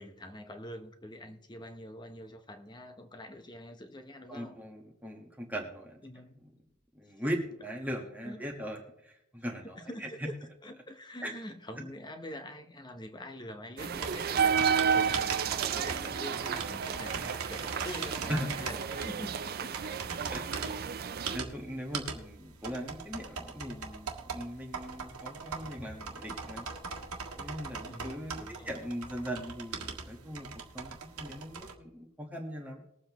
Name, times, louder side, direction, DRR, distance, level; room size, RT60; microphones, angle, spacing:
voice 1, 0.0-4.6 6.0-6.4 8.2-8.4 9.8-10.4 10.6-20.1 27.8-28.8, left 1 dB, 20° left, 7 dB, 0.9 m, -45 dB
voice 2, 4.3-6.0 6.4-6.5 6.9-10.3 11.2-11.3 15.7-15.9 18.3-18.5 20.3-20.8 21.3-26.7 27.4-30.5 30.7-32.9, equal, 5° right, 1 dB, 1.4 m, -39 dB
sound 1, 13.8-21.4, right 7 dB, 45° right, 0.4 m, -32 dB
sound 2, 13.9-31.7, right 5 dB, 90° right, 1.7 m, -40 dB
20.5 x 7.7 x 3.0 m, 0.83 s
head